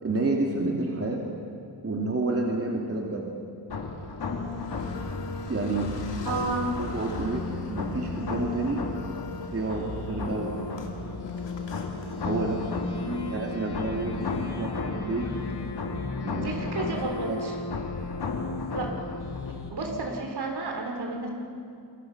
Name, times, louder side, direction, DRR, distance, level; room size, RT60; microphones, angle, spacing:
voice 1, 0.0-1.2 1.8-3.3 5.5-5.9 6.8-7.4 7.7-8.8 9.5-10.5 12.2-12.6 13.3-14.2 14.6-15.4 16.2-16.6 16.9-17.0 17.3-17.4, right 2 dB, 35° right, 0 dB, 2.5 m, -29 dB
sound 1, 3.7-19.7, left 3 dB, 65° left, 2.5 m, -33 dB
Car, 4.5-12.7, left 3 dB, 90° left, 2.7 m, -41 dB
voice 2, 6.2-6.8 13.0-13.3 14.0-14.2 16.4-17.6 18.7-19.0 19.7-21.3, right 3 dB, 65° right, 2 dB, 4.0 m, -32 dB
27.5 x 21.5 x 6.0 m, 2.4 s
wide cardioid pair, 130°, 42 cm